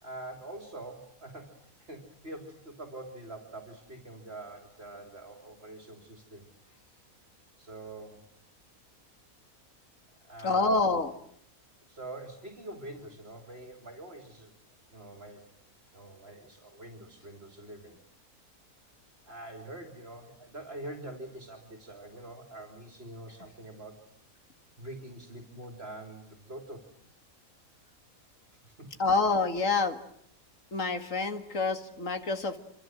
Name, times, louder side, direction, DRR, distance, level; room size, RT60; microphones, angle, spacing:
voice 1, 0.0-1.5 1.9-6.5 7.6-8.2 10.2-10.8 11.9-14.5 14.9-15.5 15.9-18.0 19.2-24.0 24.8-26.8 28.5-28.9, right 1 dB, 45° right, 4 dB, 3.5 m, -45 dB
voice 2, 10.4-11.1 29.0-30.0 30.7-32.6, left 3 dB, 60° left, 7 dB, 2.3 m, -27 dB
26.5 x 26.5 x 7.8 m, 0.68 s
omnidirectional pair, 1.5 m